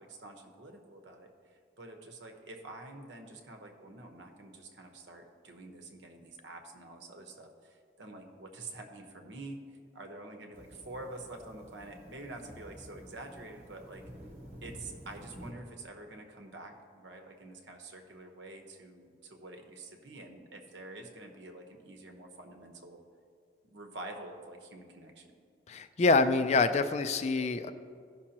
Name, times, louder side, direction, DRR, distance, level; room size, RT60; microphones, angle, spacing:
voice 1, 0.0-14.1 14.6-23.0 23.6-25.3, right 2 dB, 80° right, 4 dB, 1.0 m, -47 dB
sound 1, 10.5-15.5, equal, 40° right, 1.0 m, -50 dB
voice 2, 25.7-27.7, left 3 dB, 35° left, 10 dB, 0.3 m, -26 dB
15.5 x 6.0 x 2.9 m, 2.2 s
head